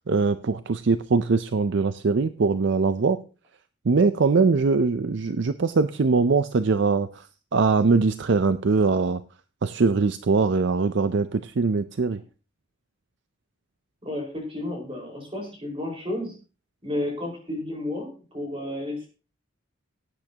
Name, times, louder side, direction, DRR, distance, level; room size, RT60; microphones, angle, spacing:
voice 1, 0.1-3.2 3.8-7.3 7.5-9.2 9.6-12.2, right 4 dB, 55° right, 12 dB, 0.5 m, -22 dB
voice 2, 14.0-16.4 16.8-19.1, left 1 dB, 25° right, 0 dB, 4.8 m, -32 dB
18.0 x 8.9 x 2.9 m, 0.34 s
head